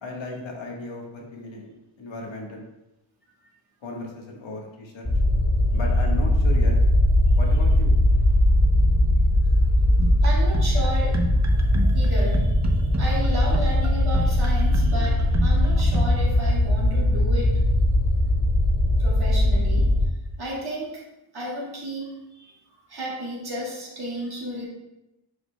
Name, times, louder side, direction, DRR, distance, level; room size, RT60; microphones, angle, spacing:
voice 1, 0.0-1.7 2.0-2.6 3.8-5.1 5.7-6.7 7.3-7.9, left 2 dB, 85° left, 0 dB, 1.5 m, -35 dB
sound 1, 5.0-20.1, left 1 dB, 30° left, 1.9 m, -20 dB
sound 2, 10.0-16.1, right 3 dB, 40° right, 0.7 m, -31 dB
voice 2, 10.2-11.2 11.9-17.6 19.0-19.9 20.4-21.0 21.3-24.6, right 1 dB, 55° right, -5 dB, 2.3 m, -33 dB
10.0 x 5.1 x 2.3 m, 0.92 s
wide cardioid pair, 180°, 45 cm